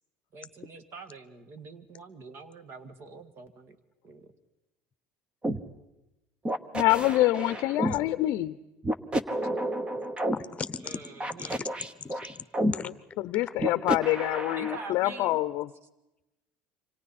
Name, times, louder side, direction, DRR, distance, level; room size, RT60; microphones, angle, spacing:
voice 1, 0.3-3.8 4.0-4.3 7.6-7.7 10.8-11.7 14.6-15.4, right 4 dB, 40° right, 11 dB, 2.0 m, -45 dB
sound 1, 5.4-5.6 6.5-8.0 8.8-10.4 11.2-12.7 13.6-14.9, right 1 dB, 15° right, 1.2 m, -30 dB
voice 2, 6.7-8.5 12.8-15.7, left 16 dB, 60° left, 13 dB, 0.7 m, -26 dB
voice 3, 10.0-11.0 11.3-11.7 12.0-12.4 12.7-12.9, left 5 dB, 20° left, 14 dB, 1.1 m, -38 dB
29.0 x 25.5 x 4.3 m, 0.95 s
cardioid pair, 125°, 6 cm